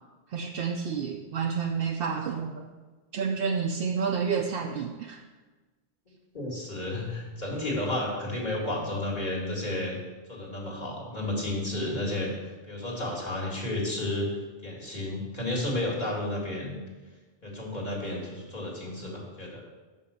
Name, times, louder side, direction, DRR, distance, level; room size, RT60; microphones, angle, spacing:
voice 1, 0.3-2.7 3.1-5.2, right 6 dB, 70° right, 2 dB, 0.7 m, -29 dB
voice 2, 6.3-10.0 10.3-12.3 12.7-14.3 14.6-16.8 17.4-19.6, left 1 dB, 45° left, -3 dB, 2.0 m, -32 dB
6.2 x 5.4 x 6.7 m, 1.3 s
omnidirectional pair, 1.0 m